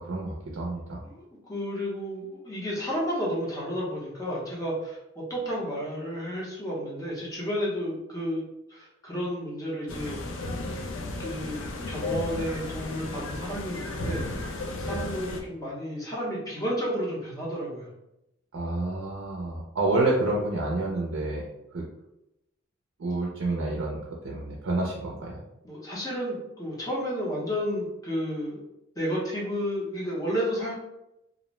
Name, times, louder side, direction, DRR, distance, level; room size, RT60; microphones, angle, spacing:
voice 1, 0.0-1.0 14.8-15.0 18.5-21.4 21.7-21.9 23.0-25.4, right 2 dB, 70° right, -2 dB, 0.4 m, -29 dB
voice 2, 1.0-8.4 8.7-10.2 11.2-11.6 11.9-14.4 14.8-17.9 25.6-28.6 29.0-30.7, equal, 15° left, -5 dB, 0.6 m, -32 dB
sound 1, 9.9-15.4, left 2 dB, 60° left, 0.4 m, -34 dB
2.5 x 2.0 x 3.0 m, 0.89 s
head